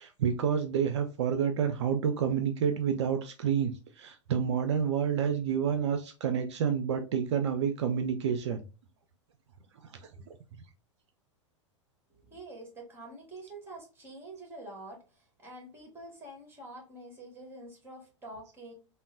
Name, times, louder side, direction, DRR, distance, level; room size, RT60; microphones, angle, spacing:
voice 1, 0.0-8.6 9.9-10.1, right 7 dB, 65° right, 0.4 m, -29 dB
voice 2, 12.1-18.7, right 1 dB, 15° right, 1.6 m, -47 dB
3.6 x 2.1 x 2.5 m
figure-of-eight pair, 95°, 16 cm